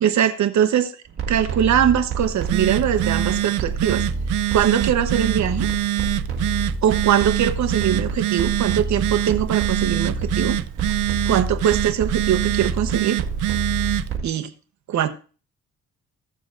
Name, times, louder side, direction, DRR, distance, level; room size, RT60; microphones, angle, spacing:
voice 1, 0.0-0.9 1.3-4.1 4.5-5.7 6.8-10.6 11.3-13.2 14.2-14.5 14.9-15.1, right 9 dB, 65° right, 1.0 m, -21 dB
sound 1, 1.1-14.2, right 4 dB, 45° right, 2.8 m, -28 dB
Telephone, 2.2-14.2, right 15 dB, 85° right, 0.5 m, -25 dB
16.0 x 7.0 x 2.5 m
cardioid pair, 90°, 30 cm